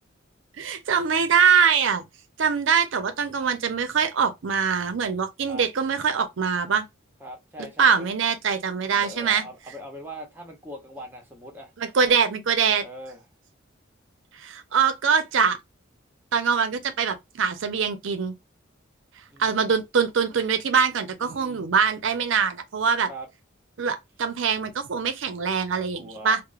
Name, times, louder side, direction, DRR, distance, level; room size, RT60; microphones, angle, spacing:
voice 1, 0.6-2.0 2.4-6.9 7.8-9.5 11.8-12.8 14.4-15.6 16.3-18.3 19.4-23.1 23.8-26.4, right 6 dB, 70° right, 0.5 m, -23 dB
voice 2, 7.2-8.1 8.9-11.7 12.8-13.2 19.3-19.7 21.2-21.7 23.1-23.3 25.9-26.4, equal, 10° right, 0.7 m, -41 dB
2.9 x 2.0 x 2.3 m
head